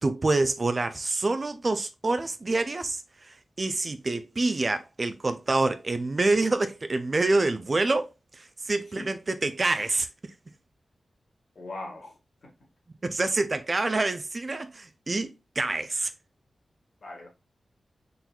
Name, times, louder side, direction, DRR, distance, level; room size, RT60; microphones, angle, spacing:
voice 1, 0.0-10.3 13.0-16.1, right 2 dB, 35° right, 0.4 m, -27 dB
voice 2, 11.5-12.5 17.0-17.3, left 2 dB, 55° left, 1.5 m, -40 dB
4.3 x 3.9 x 2.3 m
wide cardioid pair, 145°, 0 cm